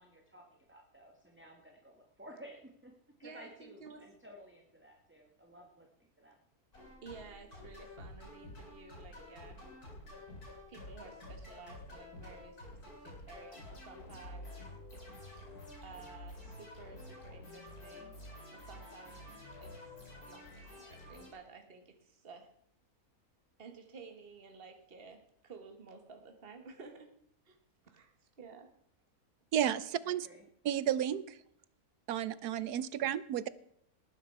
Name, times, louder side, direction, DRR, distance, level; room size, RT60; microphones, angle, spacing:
voice 1, 0.0-2.9 3.2-5.9 6.2-6.4 30.0-30.5, equal, 10° right, 1 dB, 1.7 m, -55 dB
voice 2, 3.2-4.2 7.0-9.6 10.7-14.5 14.9-15.0 15.8-18.1 18.5-19.3 19.6-19.8 20.2-22.5 23.6-27.2 27.4-27.6 27.9-28.7, right 4 dB, 40° right, 5 dB, 1.8 m, -53 dB
sound 1, 6.7-21.3, left 1 dB, 75° left, 5.2 m, -50 dB
voice 3, 29.5-30.3 30.6-31.2 32.1-33.5, right 10 dB, 90° right, 17 dB, 1.3 m, -32 dB
19.5 x 9.5 x 4.7 m, 0.70 s
omnidirectional pair, 1.6 m